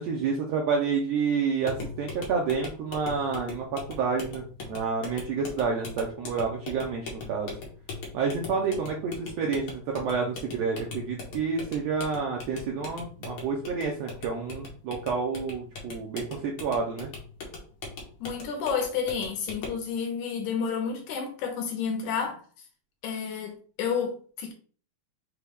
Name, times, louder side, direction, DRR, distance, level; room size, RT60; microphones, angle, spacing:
voice 1, 0.0-7.5 8.1-17.1, right 5 dB, 75° right, 1.6 m, -29 dB
Pounding Tire fast, 1.6-19.9, left 3 dB, 60° left, 1.3 m, -40 dB
voice 2, 18.2-22.4 23.0-24.5, left 6 dB, 75° left, 2.3 m, -30 dB
5.8 x 2.3 x 3.4 m
omnidirectional pair, 3.6 m